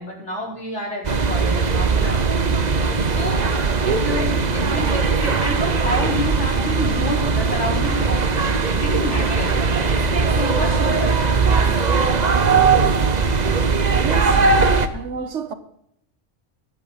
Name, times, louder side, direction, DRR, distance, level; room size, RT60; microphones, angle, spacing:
voice 1, 0.0-2.6 3.1-3.4 3.9-9.6 10.3-11.8, left 1 dB, 65° left, 5.0 m, -29 dB
sound 1, 1.0-14.9, right 4 dB, 40° right, 1.0 m, -19 dB
voice 2, 14.0-15.5, right 5 dB, 70° right, 1.4 m, -31 dB
21.5 x 8.4 x 5.0 m
omnidirectional pair, 1.3 m